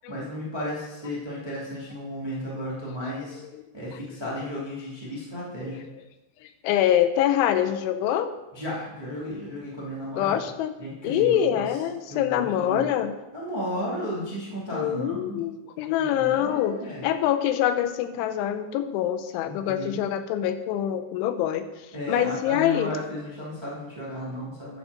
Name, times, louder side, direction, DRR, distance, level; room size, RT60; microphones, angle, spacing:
voice 1, 0.1-3.4 3.7-5.8 8.5-10.4 10.8-11.7 12.1-12.8 13.3-15.4 16.0-17.0 19.4-20.0 21.9-24.8, equal, 30° right, -6 dB, 0.4 m, -34 dB
voice 2, 6.4-8.3 10.2-10.7 11.0-13.1 14.7-22.9, left 10 dB, 85° left, 10 dB, 3.1 m, -25 dB
10.5 x 4.9 x 6.4 m, 1.0 s
omnidirectional pair, 5.3 m